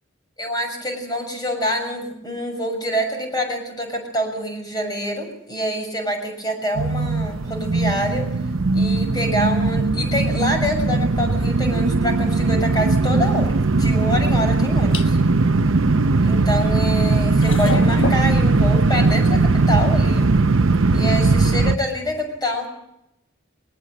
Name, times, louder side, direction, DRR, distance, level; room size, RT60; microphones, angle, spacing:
voice 1, 0.4-8.2 8.7-15.2 16.2-20.3 20.9-22.7, equal, 20° left, 4 dB, 6.7 m, -26 dB
sound 1, 6.8-21.8, right 3 dB, 90° right, 0.8 m, -19 dB
sound 2, 13.1-21.0, left 3 dB, 65° left, 1.3 m, -35 dB
21.5 x 19.0 x 7.7 m, 0.82 s
head